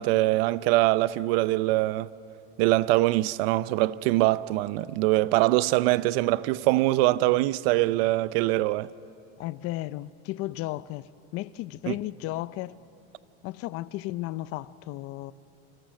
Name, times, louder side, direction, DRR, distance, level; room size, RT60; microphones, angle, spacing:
voice 1, 0.0-2.1 2.6-8.9 11.9-12.0, right 18 dB, 80° right, 0.7 m, -23 dB
voice 2, 9.4-12.8 13.4-15.3, left 16 dB, 50° left, 0.6 m, -34 dB
28.0 x 27.5 x 6.5 m
cardioid pair, 145°, 29 cm